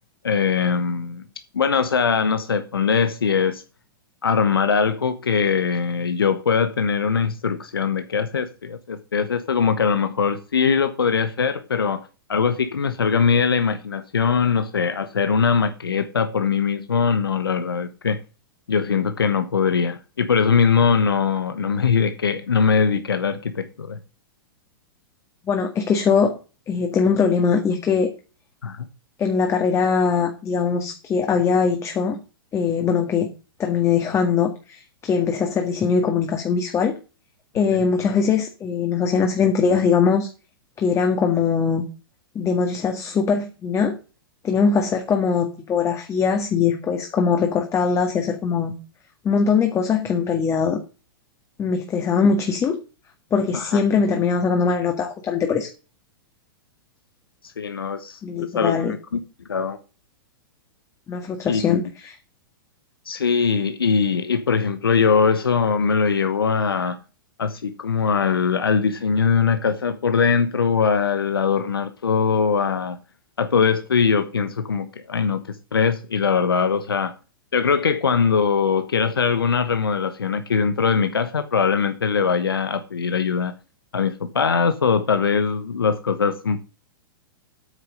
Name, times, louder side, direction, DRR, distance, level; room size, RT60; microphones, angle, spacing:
voice 1, 0.2-1.2 1.5-3.6 4.2-18.2 18.7-24.0 28.6-28.8 37.7-37.9 53.5-53.8 57.4-59.0 59.5-59.8 61.5-61.8 63.1-67.0 67.4-73.0 73.4-77.1 77.5-83.5 83.9-86.6, left 6 dB, 85° left, 1.1 m, -21 dB
voice 2, 25.5-26.3 26.7-28.1 29.2-32.2 32.5-33.3 33.6-37.0 37.5-40.3 40.8-41.8 42.4-43.9 44.4-48.8 49.2-50.8 51.6-52.8 53.3-55.7 58.2-58.9 61.1-62.2, left 6 dB, 25° left, 1.8 m, -21 dB
9.0 x 6.6 x 6.4 m
hypercardioid pair, 110°, 12 cm